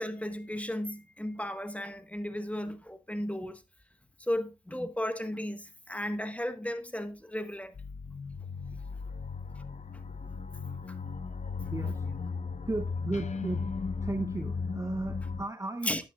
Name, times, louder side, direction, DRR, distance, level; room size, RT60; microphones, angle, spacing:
voice 1, 0.0-3.6 4.2-7.7 9.9-10.0 15.8-16.0, left 1 dB, 10° left, 1.4 m, -35 dB
sound 1, 7.7-15.5, left 4 dB, 45° left, 1.0 m, -36 dB
voice 2, 11.7-12.0 12.7-13.7 14.0-16.0, right 2 dB, 20° right, 0.8 m, -34 dB
12.5 x 9.4 x 2.4 m
cardioid pair, 55°, 16 cm